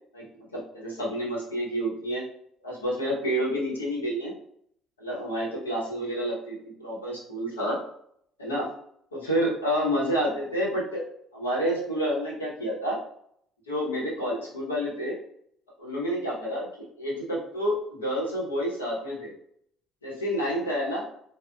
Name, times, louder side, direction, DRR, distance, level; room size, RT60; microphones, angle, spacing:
voice 1, 0.5-2.2 2.6-4.3 5.0-7.8 8.4-8.7 9.1-11.1 11.3-13.0 13.7-15.2 15.8-16.7 17.0-19.3 20.0-21.0, equal, 90° left, -5 dB, 0.8 m, -29 dB
3.4 x 2.1 x 2.2 m, 0.67 s
hypercardioid pair, 55°, 0 cm